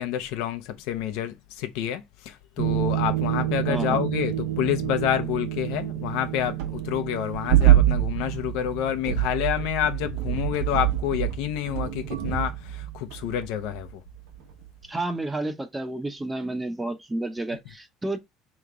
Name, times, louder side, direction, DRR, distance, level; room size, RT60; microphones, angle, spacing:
voice 1, 0.0-14.0, left 11 dB, 80° left, 0.8 m, -28 dB
sound 1, 2.6-14.1 14.4-14.6, right 13 dB, 85° right, 1.0 m, -26 dB
voice 2, 3.7-4.0 14.9-18.2, right 2 dB, 10° right, 0.7 m, -30 dB
3.4 x 3.1 x 3.7 m
cardioid pair, 125°, 0 cm